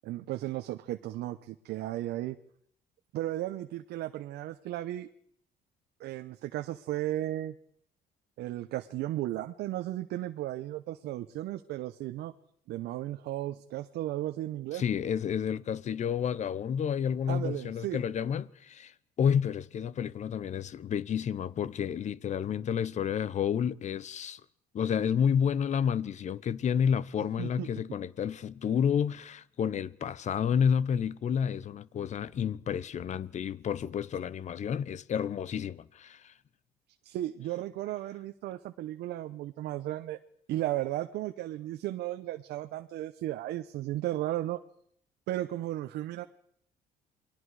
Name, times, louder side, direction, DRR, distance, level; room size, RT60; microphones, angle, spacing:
voice 1, 0.0-2.4 3.1-5.1 6.0-7.5 8.4-12.3 12.7-14.8 17.3-18.0 27.4-27.7 37.0-40.2 40.5-44.6 45.3-46.2, right 14 dB, 75° right, 0.9 m, -35 dB
voice 2, 14.7-24.4 24.7-36.3, left 8 dB, 45° left, 0.8 m, -30 dB
28.5 x 21.5 x 4.8 m
cardioid pair, 110°, 17 cm